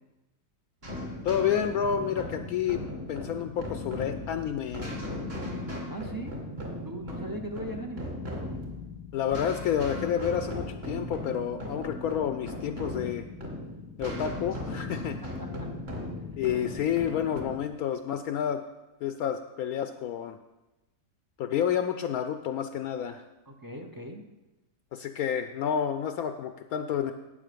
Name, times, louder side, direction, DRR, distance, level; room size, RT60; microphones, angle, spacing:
sound 1, 0.8-17.5, left 1 dB, 40° right, 2.3 m, -37 dB
voice 1, 1.2-2.8 3.1-4.9 9.1-13.3 14.0-15.2 16.4-18.6 19.0-20.4 21.4-23.2 24.9-27.1, left 9 dB, 70° left, 8 dB, 1.0 m, -29 dB
voice 2, 5.9-6.4 6.8-8.2 15.2-15.7 23.5-24.3, right 1 dB, 20° right, 4 dB, 0.5 m, -39 dB
11.5 x 8.6 x 5.1 m, 1.0 s
omnidirectional pair, 1.7 m